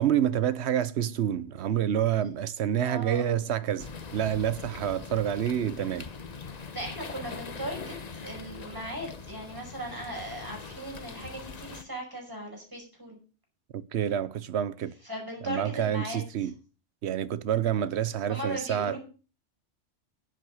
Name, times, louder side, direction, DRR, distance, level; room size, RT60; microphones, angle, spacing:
voice 1, 0.0-6.1 13.7-14.9 15.4-16.5 17.0-19.0, right 10 dB, 70° right, 1.0 m, -28 dB
voice 2, 2.8-3.4 6.7-13.2 15.0-16.5 18.3-19.0, equal, 15° right, 5.3 m, -38 dB
sound 1, 3.8-11.8, left 5 dB, 40° left, 1.0 m, -42 dB
10.5 x 7.8 x 6.3 m
omnidirectional pair, 1.2 m